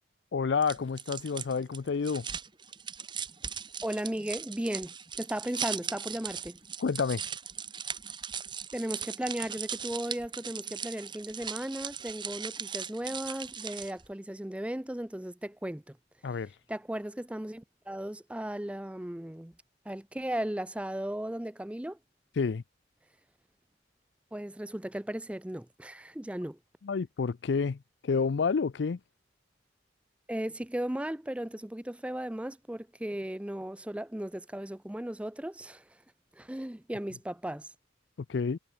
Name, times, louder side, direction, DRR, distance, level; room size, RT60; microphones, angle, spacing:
voice 1, 0.3-2.3 6.8-7.2 16.2-16.5 22.4-22.6 26.8-29.0 38.3-38.6, left 5 dB, 70° left, 0.4 m, -29 dB
sound 1, 0.6-14.1, right 7 dB, 25° right, 1.5 m, -39 dB
voice 2, 3.8-6.6 8.7-16.0 16.7-19.5 19.9-22.0 24.3-26.6 30.3-35.8 36.3-37.7, right 1 dB, 5° right, 0.4 m, -36 dB
head